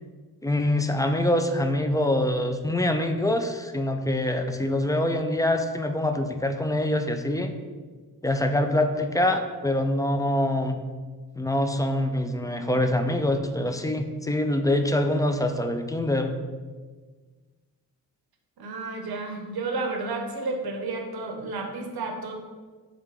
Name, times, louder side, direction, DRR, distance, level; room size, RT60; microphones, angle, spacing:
voice 1, 0.4-7.5 8.2-10.8 11.4-16.4, left 1 dB, 10° left, 6 dB, 0.3 m, -25 dB
voice 2, 18.6-22.3, right 3 dB, 70° right, 3 dB, 0.7 m, -31 dB
3.7 x 3.4 x 3.3 m, 1.4 s
cardioid pair, 45°, 39 cm